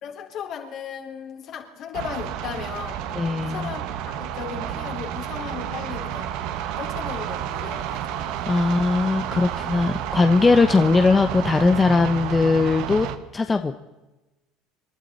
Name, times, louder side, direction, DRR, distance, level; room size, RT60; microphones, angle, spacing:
voice 1, 0.0-3.0 3.4-6.3 6.8-8.3 8.6-9.0, left 8 dB, 55° left, 2 dB, 3.8 m, -36 dB
sound 1, 1.9-13.2, right 10 dB, 70° right, 1.5 m, -30 dB
voice 2, 3.1-3.7 8.5-13.1 13.3-13.8, left 3 dB, 20° left, 7 dB, 1.0 m, -20 dB
28.0 x 12.0 x 4.2 m, 1.1 s
supercardioid pair, 100°, 0 cm